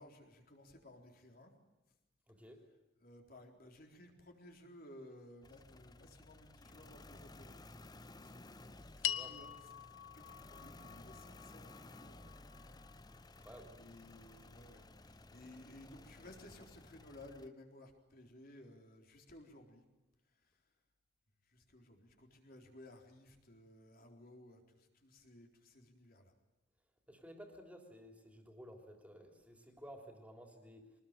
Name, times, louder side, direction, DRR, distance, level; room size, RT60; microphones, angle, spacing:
voice 1, 0.0-1.5 3.0-7.6 8.0-13.5 13.8-19.8 20.3-20.6 21.4-26.4, left 1 dB, 50° left, 3 dB, 4.0 m, -58 dB
voice 2, 2.3-2.6 9.0-9.4 13.4-13.8 27.1-30.9, equal, 5° right, 4 dB, 3.6 m, -54 dB
sound 1, 5.4-17.5, left 2 dB, 20° left, 0.8 m, -56 dB
sound 2, 9.0-13.5, left 11 dB, 80° left, 1.1 m, -44 dB
24.5 x 20.0 x 9.0 m, 1.0 s
head